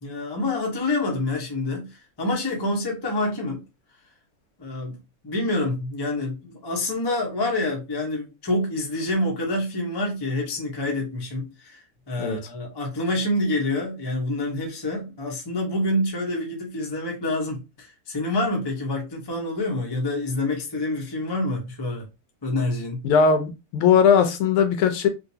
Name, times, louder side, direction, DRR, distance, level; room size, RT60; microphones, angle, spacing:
voice 1, 0.0-3.6 4.6-5.0 5.2-22.1 22.4-23.0, left 2 dB, 40° left, 0.3 m, -27 dB
voice 2, 23.0-25.1, left 6 dB, 85° left, 1.6 m, -19 dB
3.8 x 2.5 x 2.7 m
omnidirectional pair, 2.3 m